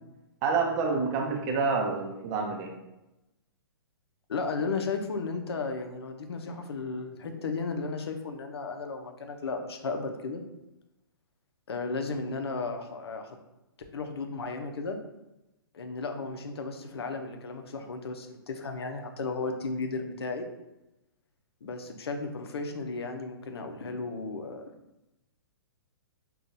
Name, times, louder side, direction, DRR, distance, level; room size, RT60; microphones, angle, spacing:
voice 1, 0.4-2.7, right 4 dB, 25° right, 2 dB, 0.5 m, -28 dB
voice 2, 4.3-10.4 11.7-13.3 13.9-15.0 15.7-20.5 21.6-24.6, left 4 dB, 90° left, 5 dB, 0.6 m, -34 dB
5.6 x 2.3 x 2.6 m, 0.94 s
hypercardioid pair, 155°, 13 cm